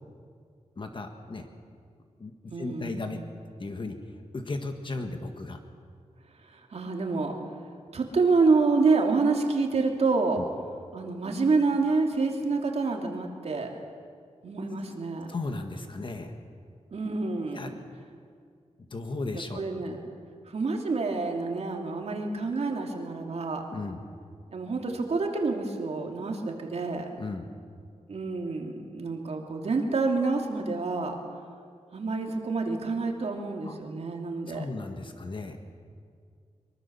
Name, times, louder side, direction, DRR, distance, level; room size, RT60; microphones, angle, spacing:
voice 1, 0.7-1.5 2.2-3.2 3.6-5.6 10.4-10.5 15.3-16.3 17.4-17.7 18.9-19.6 23.7-24.0 27.2-27.5 33.6-33.8 34.5-35.6, left 3 dB, 45° left, 5 dB, 1.6 m, -35 dB
voice 2, 2.5-3.1 6.5-7.4 7.9-10.4 10.9-13.7 14.4-15.3 16.9-17.7 19.5-20.0 20.5-23.6 24.5-27.0 28.1-31.2 31.9-34.7, right 3 dB, 60° right, 2 dB, 2.8 m, -27 dB
23.5 x 23.5 x 7.1 m, 2.2 s
wide cardioid pair, 170°, 12 cm